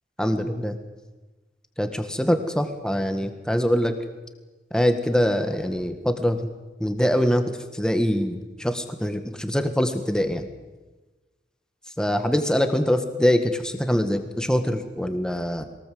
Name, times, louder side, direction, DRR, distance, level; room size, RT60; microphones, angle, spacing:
voice 1, 0.2-0.8 1.8-4.0 4.7-6.4 6.8-10.5 12.0-15.6, equal, 5° left, 7 dB, 1.7 m, -23 dB
23.0 x 19.5 x 7.8 m, 1.2 s
head